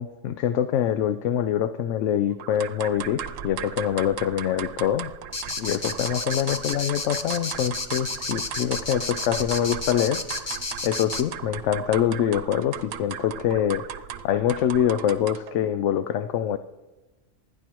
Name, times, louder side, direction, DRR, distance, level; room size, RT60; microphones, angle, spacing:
voice 1, 0.0-5.1 5.6-10.6 10.8-16.6, left 10 dB, 75° left, 11 dB, 0.9 m, -25 dB
sound 1, 2.4-15.6, right 9 dB, 85° right, 1.0 m, -37 dB
sound 2, 5.3-11.2, left 3 dB, 25° left, 0.6 m, -31 dB
28.5 x 10.0 x 3.0 m, 1.1 s
omnidirectional pair, 1.3 m